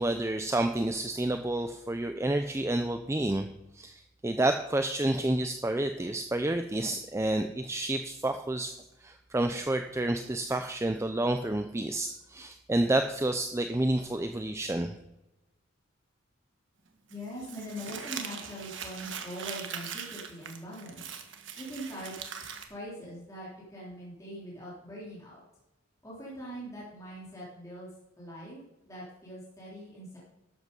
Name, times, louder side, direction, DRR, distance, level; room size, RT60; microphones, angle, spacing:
voice 1, 0.0-3.5 3.7-8.7 9.0-14.9, right 1 dB, 15° right, 7 dB, 0.5 m, -29 dB
voice 2, 17.1-21.1 21.6-25.4 26.0-27.9 28.2-30.2, equal, 15° left, -7 dB, 3.3 m, -42 dB
Crumpling crinkling, 17.1-22.6, right 7 dB, 65° right, 1.4 m, -41 dB
12.5 x 7.8 x 5.3 m, 0.96 s
head